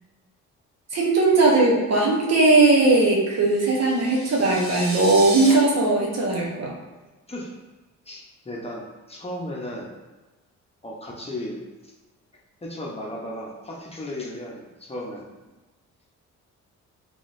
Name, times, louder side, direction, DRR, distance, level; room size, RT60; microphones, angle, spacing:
voice 1, 0.9-6.7, right 2 dB, 60° right, -2 dB, 1.0 m, -19 dB
sound 1, 3.6-5.5, right 1 dB, 30° right, 1.4 m, -33 dB
voice 2, 8.1-9.9 10.8-11.9 12.6-15.3, left 1 dB, 20° left, -3 dB, 0.8 m, -35 dB
3.8 x 3.1 x 2.5 m, 1.2 s
cardioid pair, 90°, 30 cm